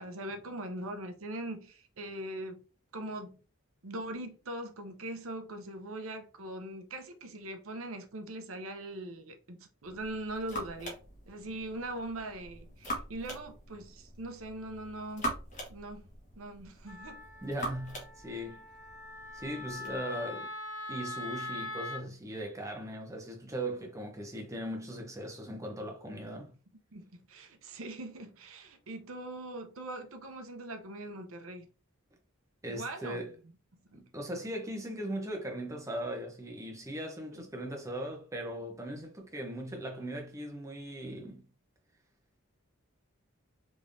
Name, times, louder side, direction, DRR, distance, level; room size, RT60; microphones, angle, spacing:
voice 1, 0.0-2.6 2.9-3.4 3.8-11.0 11.3-15.3 15.7-16.0 16.4-17.2 26.9-31.7 32.7-33.2 33.8-34.0 37.3-37.4, right 1 dB, 70° right, 0.7 m, -41 dB
sound 1, 9.8-20.0, equal, 35° left, 1.2 m, -43 dB
Wind instrument woodwind instrument, 16.9-22.0, left 2 dB, 15° left, 0.9 m, -42 dB
voice 2, 17.4-18.6 19.3-20.5 20.9-26.5 32.6-33.3 33.9-41.5, right 1 dB, 15° right, 0.8 m, -39 dB
3.6 x 3.3 x 2.6 m
head